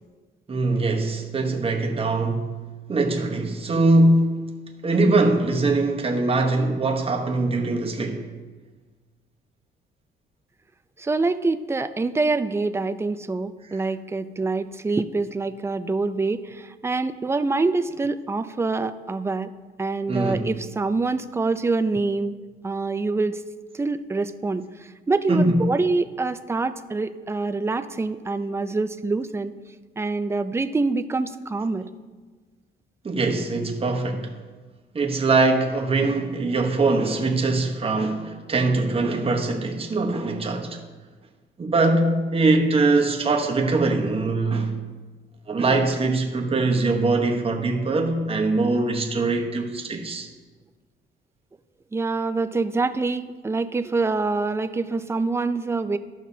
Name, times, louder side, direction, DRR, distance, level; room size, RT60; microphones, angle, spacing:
voice 1, 0.5-2.5 2.9-4.4 4.8-8.3 20.1-20.5 25.3-25.6 33.0-34.3 34.9-40.8 41.6-44.7 45.5-50.3, right 2 dB, 30° right, 1.1 m, -22 dB
voice 2, 11.0-19.5 19.8-22.3 22.6-23.4 23.7-29.5 30.0-31.9 51.9-56.0, right 3 dB, 15° right, 0.4 m, -25 dB
14.0 x 5.8 x 2.8 m
cardioid pair, 90°, 20 cm